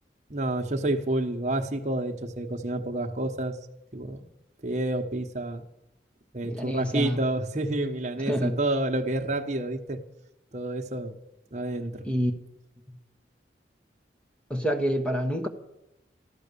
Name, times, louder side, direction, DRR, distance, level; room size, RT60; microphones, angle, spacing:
voice 1, 0.3-3.6 3.9-4.2 4.6-5.6 6.3-10.0 10.5-11.2 11.5-12.0, right 1 dB, 40° right, 1.2 m, -29 dB
voice 2, 6.4-7.2 8.3-8.6 12.0-12.3 12.9-13.0 14.5-15.5, equal, 5° left, 1.3 m, -27 dB
13.5 x 13.0 x 7.0 m
head